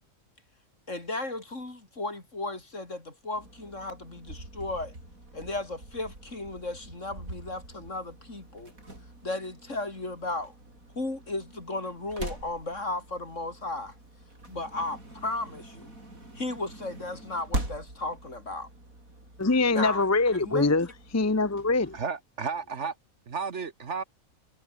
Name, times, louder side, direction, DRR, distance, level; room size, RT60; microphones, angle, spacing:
voice 1, 0.9-4.9 5.3-8.7 9.2-10.5 11.0-13.9 14.5-15.9 16.4-18.7 19.7-20.0 20.4-20.7, left 2 dB, 60° left, 5.2 m, -35 dB
sound 1, 3.3-22.0, right 1 dB, 85° right, 8.4 m, -43 dB
voice 2, 19.4-22.0, left 3 dB, 20° left, 0.5 m, -24 dB
voice 3, 21.9-22.9 23.3-24.0, right 5 dB, 60° right, 1.7 m, -33 dB
omnidirectional pair, 1.4 m